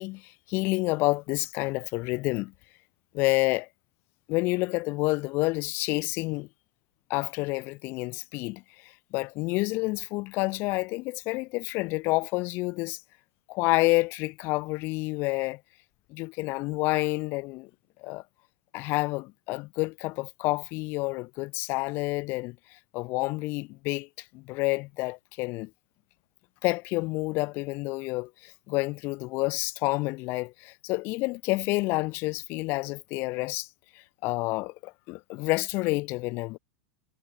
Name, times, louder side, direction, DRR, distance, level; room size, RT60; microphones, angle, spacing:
voice 1, 0.0-2.5 3.1-3.7 4.3-6.5 7.1-13.0 13.5-15.6 16.1-17.7 18.0-18.2 18.7-25.7 26.6-33.7 33.9-36.6, left 23 dB, 40° left, 2.2 m, -29 dB
figure-of-eight pair, 95°, 6 cm